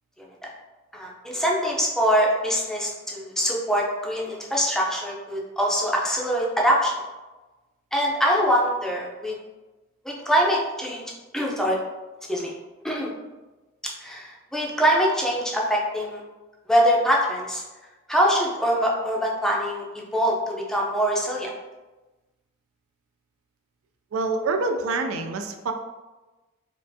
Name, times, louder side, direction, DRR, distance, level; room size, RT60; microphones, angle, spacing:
voice 1, 0.9-6.9 7.9-9.4 10.0-11.0 11.3-11.8 12.3-12.5 12.8-13.1 13.8-16.2 16.7-17.6 18.1-21.5, equal, ahead, -3 dB, 0.5 m, -23 dB
voice 2, 24.1-25.7, right 3 dB, 70° right, 5 dB, 0.4 m, -26 dB
4.4 x 2.4 x 2.7 m, 1.2 s
head